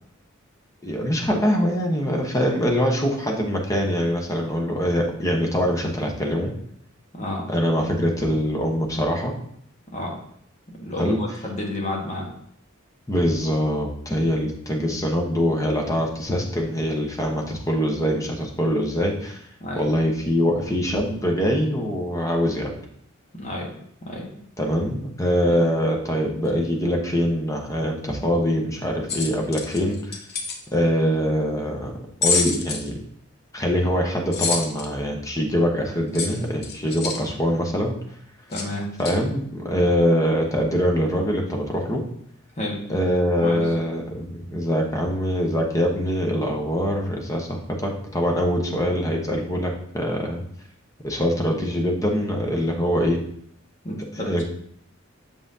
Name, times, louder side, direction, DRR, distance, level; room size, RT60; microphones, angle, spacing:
voice 1, 0.8-6.5 7.5-9.3 11.0-11.2 13.1-19.4 19.8-22.7 24.6-30.2 30.7-31.9 32.2-33.0 33.5-38.0 39.0-42.0 42.9-50.4 51.0-53.2 54.2-54.4, equal, 15° left, 1 dB, 1.0 m, -23 dB
voice 2, 7.1-7.5 9.9-10.2 10.8-12.3 19.6-19.9 23.4-23.7 24.1-24.3 25.4-25.6 38.5-38.9 42.6-42.8 43.4-43.7 53.8-54.4, left 1 dB, 35° left, -1 dB, 1.3 m, -30 dB
sound 1, 29.1-30.6 32.2-32.9 34.3-34.9 36.1-37.2 38.5-38.7 39.0-39.2, left 5 dB, 55° left, 0.8 m, -26 dB
7.0 x 5.6 x 2.7 m, 0.68 s
head